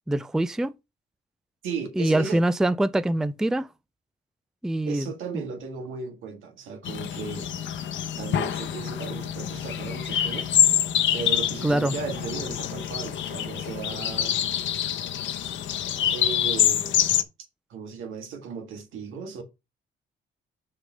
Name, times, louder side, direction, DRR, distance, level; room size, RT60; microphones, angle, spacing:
voice 1, 0.1-0.7 2.0-3.7 4.6-5.1 5.3-5.4 11.6-11.9, right 1 dB, 5° right, 0.4 m, -24 dB
voice 2, 1.6-2.4 4.8-7.5 8.2-10.5 11.1-14.4 16.1-17.1 17.7-19.4, right 5 dB, 85° right, 1.8 m, -36 dB
sound 1, 6.8-17.2, left 10 dB, 70° left, 1.0 m, -26 dB
6.7 x 3.7 x 6.2 m
cardioid pair, 90°, 20 cm